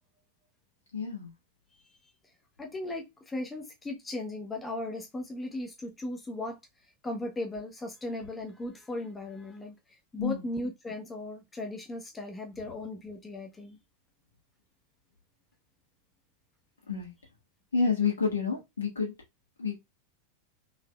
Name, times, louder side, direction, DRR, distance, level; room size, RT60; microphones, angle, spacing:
voice 1, 0.9-1.3 10.2-10.4 16.9-17.1 17.7-19.1 19.6-19.8, left 5 dB, 70° left, 1.5 m, -29 dB
voice 2, 2.6-6.6 7.0-9.8 10.1-13.8, left 1 dB, 15° left, 0.8 m, -37 dB
3.9 x 2.8 x 2.3 m
figure-of-eight pair, 90°, 0 cm